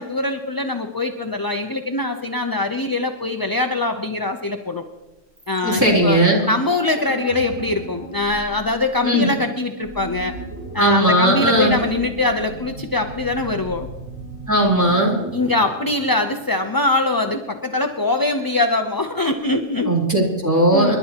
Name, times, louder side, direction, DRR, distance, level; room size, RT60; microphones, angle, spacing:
voice 1, 0.0-4.8 5.5-10.3 10.7-13.9 15.3-19.9 20.7-20.9, left 2 dB, 25° left, 5 dB, 0.5 m, -22 dB
sound 1, 5.4-17.4 17.6-17.7, right 1 dB, 90° right, 6.7 m, -36 dB
voice 2, 5.6-6.4 9.0-9.3 10.8-11.7 14.5-15.1 19.8-21.0, right 1 dB, 15° right, -3 dB, 3.7 m, -17 dB
29.5 x 11.5 x 2.9 m, 1.1 s
omnidirectional pair, 1.3 m